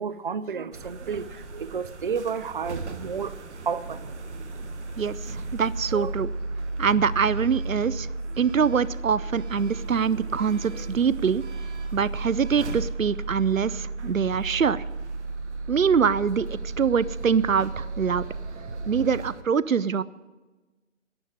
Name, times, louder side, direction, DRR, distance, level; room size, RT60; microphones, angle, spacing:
voice 1, 0.0-3.3 3.7-4.1 5.9-6.1, right 6 dB, 40° right, 0.6 m, -31 dB
sound 1, 0.7-19.4, right 3 dB, 60° right, 1.3 m, -34 dB
voice 2, 5.0-6.3 6.8-8.1 8.4-11.4 11.9-14.8 15.7-18.2 18.9-20.0, right 6 dB, 80° right, 0.7 m, -24 dB
11.5 x 9.3 x 8.5 m
figure-of-eight pair, 135°, 39 cm